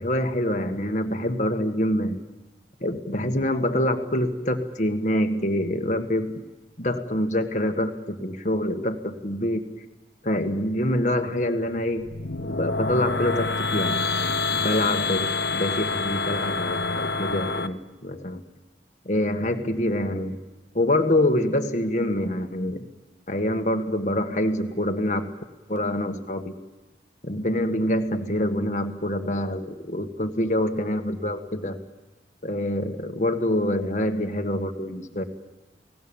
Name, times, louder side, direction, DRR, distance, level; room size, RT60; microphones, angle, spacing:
voice 1, 0.0-2.2 2.8-6.3 6.8-9.6 10.2-12.1 12.4-18.4 19.0-20.4 20.7-22.8 23.3-25.3 25.7-26.5 27.2-31.8 32.4-35.2, left 1 dB, 45° left, 5 dB, 1.7 m, -26 dB
sound 1, 12.0-17.7, left 3 dB, 70° left, 1.1 m, -27 dB
29.5 x 18.5 x 7.2 m, 1.1 s
head